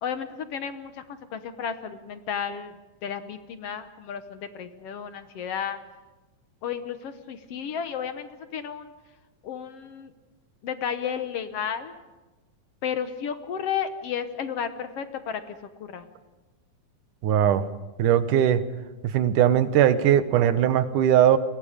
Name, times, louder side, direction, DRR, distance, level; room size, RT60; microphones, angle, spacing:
voice 1, 0.0-2.8 3.0-5.8 6.6-8.9 9.4-10.1 10.6-12.0 12.8-16.1, left 8 dB, 65° left, 9 dB, 1.7 m, -33 dB
voice 2, 17.2-17.6 18.0-18.6 19.1-21.4, right 10 dB, 85° right, 11 dB, 2.6 m, -20 dB
30.0 x 22.5 x 5.1 m, 1.1 s
omnidirectional pair, 3.6 m